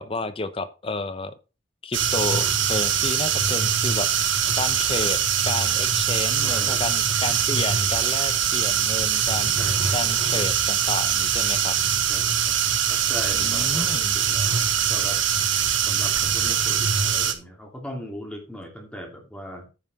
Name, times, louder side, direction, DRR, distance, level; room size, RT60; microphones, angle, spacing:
voice 1, 0.0-1.3 1.8-4.1 4.6-9.5 9.9-11.8 13.4-14.1, left 3 dB, 30° left, 13 dB, 0.7 m, -31 dB
sound 1, 1.9-17.3, right 8 dB, 80° right, 1.5 m, -22 dB
voice 2, 6.4-6.9 9.5-9.9 12.1-12.6 12.9-14.5 14.9-15.2 15.6-19.7, equal, 5° left, 1 dB, 2.7 m, -38 dB
9.7 x 5.5 x 5.3 m, 0.31 s
head